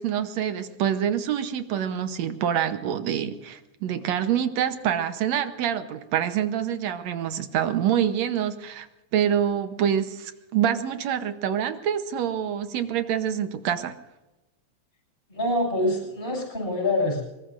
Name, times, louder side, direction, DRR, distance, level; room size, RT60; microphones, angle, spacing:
voice 1, 0.0-8.9 9.1-13.9, right 9 dB, 70° right, 9 dB, 2.1 m, -26 dB
voice 2, 15.3-17.2, left 1 dB, 20° left, 0 dB, 7.0 m, -25 dB
24.5 x 22.0 x 2.5 m, 1.0 s
omnidirectional pair, 3.3 m